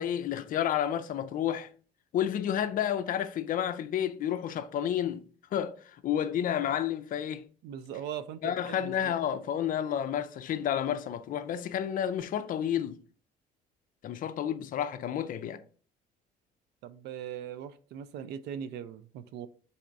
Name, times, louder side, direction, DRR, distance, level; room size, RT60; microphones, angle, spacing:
voice 1, 0.0-1.7 2.1-5.3 5.5-7.4 8.4-13.0 14.0-15.6, left 10 dB, 55° left, 0.4 m, -30 dB
voice 2, 7.6-9.1 16.8-19.5, right 9 dB, 80° right, 0.4 m, -40 dB
4.1 x 2.5 x 4.5 m
cardioid pair, 110°, 17 cm